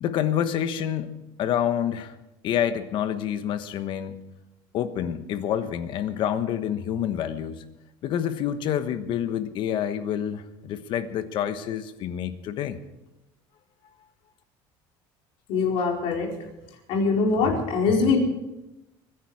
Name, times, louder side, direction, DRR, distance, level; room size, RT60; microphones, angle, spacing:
voice 1, 0.0-2.1 2.4-4.2 4.7-7.6 8.0-12.8, left 9 dB, 55° left, 11 dB, 1.2 m, -28 dB
voice 2, 15.5-16.3 16.9-18.2, left 4 dB, 70° left, 0 dB, 4.5 m, -22 dB
23.5 x 10.5 x 4.9 m, 0.96 s
cardioid pair, 145°, 10 cm